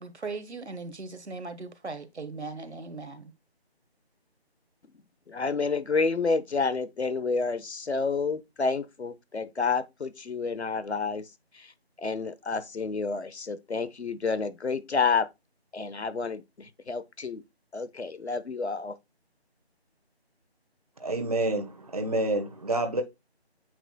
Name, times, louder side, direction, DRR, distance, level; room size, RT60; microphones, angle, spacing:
voice 1, 0.0-3.3, right 3 dB, 90° right, 1.4 m, -38 dB
voice 2, 5.3-11.3 11.5-11.7 12.0-15.3 15.7-17.4 17.7-19.0, left 4 dB, 80° left, 1.1 m, -29 dB
voice 3, 21.0-23.0, right 2 dB, 35° right, 1.2 m, -28 dB
9.0 x 6.2 x 2.2 m
figure-of-eight pair, 175°, 32 cm